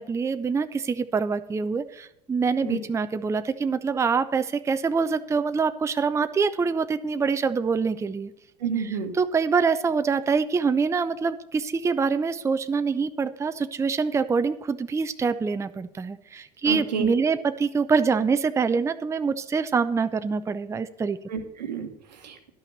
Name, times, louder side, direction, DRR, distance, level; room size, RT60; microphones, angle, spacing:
voice 1, 0.0-8.3 8.8-21.2, right 5 dB, 15° right, 11 dB, 0.5 m, -25 dB
voice 2, 8.6-9.1 16.6-17.1 21.3-22.5, right 5 dB, 90° right, 6 dB, 1.2 m, -30 dB
11.0 x 5.7 x 6.7 m, 0.82 s
hypercardioid pair, 80°, 21 cm